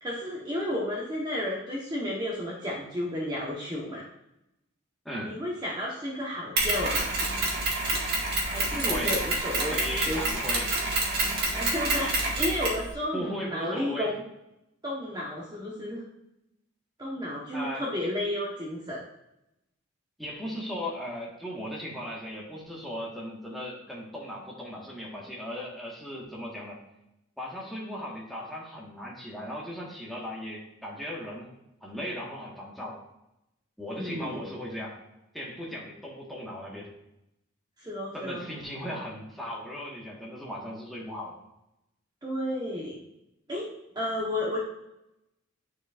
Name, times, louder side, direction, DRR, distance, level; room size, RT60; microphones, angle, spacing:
voice 1, 0.0-4.0 5.2-7.1 8.4-9.8 10.0-10.3 11.5-14.2 14.8-16.0 17.0-19.0 33.9-34.4 37.8-38.4 42.2-43.0 43.5-44.6, left 1 dB, 20° right, -4 dB, 1.1 m, -32 dB
voice 2, 5.0-5.4 8.9-9.2 9.7-10.7 13.1-14.1 17.5-18.1 20.2-26.8 27.4-31.5 31.8-33.1 33.8-35.0 35.3-36.9 38.1-41.4, equal, ahead, -5 dB, 1.5 m, -37 dB
Mechanisms, 6.6-12.8, right 2 dB, 50° right, 1.9 m, -28 dB
10.0 x 4.7 x 2.5 m, 0.86 s
head